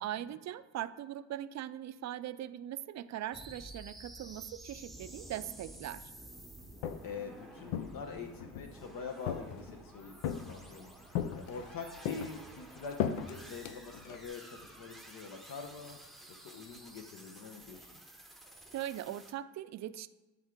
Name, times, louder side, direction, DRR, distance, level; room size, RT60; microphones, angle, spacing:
voice 1, 0.0-6.1 18.7-20.1, right 12 dB, 45° right, 13 dB, 0.4 m, -40 dB
sound 1, 3.3-19.3, right 1 dB, ahead, 0.8 m, -52 dB
Walk footsteps, 6.6-7.2 7.7-8.7 9.3-9.8 10.2-10.8 11.1-11.7 12.0-14.3, left 9 dB, 90° left, 0.6 m, -37 dB
voice 2, 7.0-10.9 11.3-16.0 16.4-18.0, left 5 dB, 60° left, 4 dB, 0.9 m, -45 dB
11.0 x 3.6 x 3.7 m, 1.2 s
supercardioid pair, 90°, 38 cm